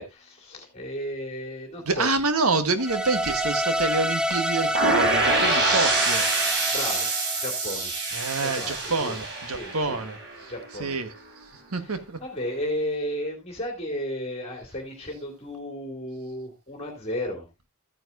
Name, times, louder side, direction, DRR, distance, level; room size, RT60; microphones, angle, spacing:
voice 1, 0.0-2.1 6.7-7.1 7.4-8.0 8.4-9.2 9.5-10.0 10.5-11.0 11.8-17.5, left 1 dB, 30° left, 2.5 m, -34 dB
voice 2, 1.9-6.3 6.6-6.7 8.1-10.5 10.8-11.1 11.7-12.2, right 3 dB, 70° right, 1.4 m, -27 dB
sound 1, 2.8-8.0, equal, 5° right, 0.5 m, -28 dB
sound 2, 4.7-10.6, right 3 dB, 50° right, 3.8 m, -26 dB
14.0 x 9.5 x 2.5 m
head